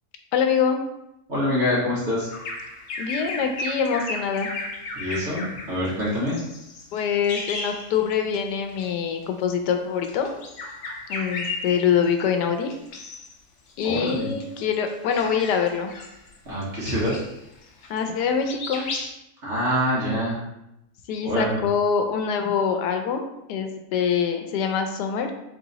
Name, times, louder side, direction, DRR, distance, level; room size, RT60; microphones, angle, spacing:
voice 1, 0.3-0.8 3.0-4.5 6.9-10.3 11.1-12.7 13.8-15.9 17.9-18.9 21.1-25.3, left 7 dB, 85° left, 5 dB, 1.2 m, -24 dB
voice 2, 1.3-2.3 4.9-5.4 5.7-6.4 13.8-14.3 16.5-17.1 19.4-20.4 21.2-21.6, equal, 45° right, -8 dB, 1.9 m, -25 dB
Bird vocalization bird call bird song, 2.3-8.4 8.7-8.9 9.9-12.2 12.7-13.3 13.7-18.2 18.5-19.1, left 2 dB, 60° left, 0.9 m, -35 dB
4.0 x 2.8 x 4.0 m, 0.86 s
omnidirectional pair, 1.8 m